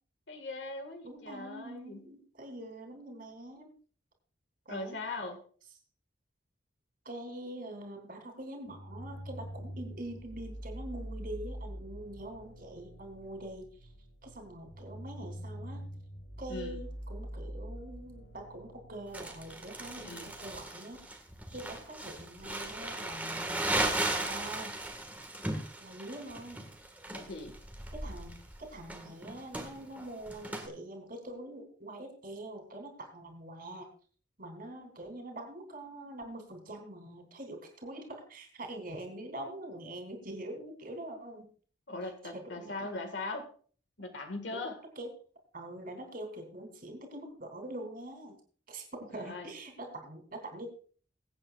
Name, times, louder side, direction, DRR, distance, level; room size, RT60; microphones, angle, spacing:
voice 1, 0.3-2.1 4.7-5.4 16.5-16.8 20.0-20.3 27.1-27.5 41.9-43.5 44.0-44.8 49.1-49.5, left 2 dB, 70° left, 5 dB, 1.8 m, -40 dB
voice 2, 1.0-3.7 4.6-5.0 7.0-13.9 14.2-15.9 16.4-21.0 21.5-23.7 24.0-24.8 25.8-26.7 27.9-33.9 34.4-41.5 42.0-42.9 44.5-44.6 44.9-45.1 45.5-48.4 48.7-50.7, right 1 dB, 50° right, 3 dB, 3.3 m, -44 dB
sound 1, 8.7-20.6, equal, 90° left, 5.9 m, -45 dB
Crumpling crinkling, 19.1-30.7, right 1 dB, 10° right, 1.7 m, -37 dB
23.0 x 8.7 x 2.4 m, 0.43 s
head